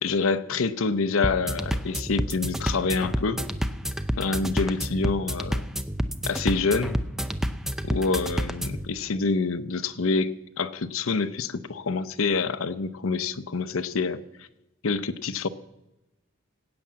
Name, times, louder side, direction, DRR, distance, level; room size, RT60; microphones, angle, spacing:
voice 1, 0.0-3.4 4.2-5.7 6.3-7.0 7.8-14.5 14.8-15.5, left 4 dB, 80° left, 14 dB, 0.7 m, -27 dB
sound 1, 1.2-8.9, equal, ahead, 0.5 m, -29 dB
20.0 x 8.8 x 7.4 m, 0.95 s
head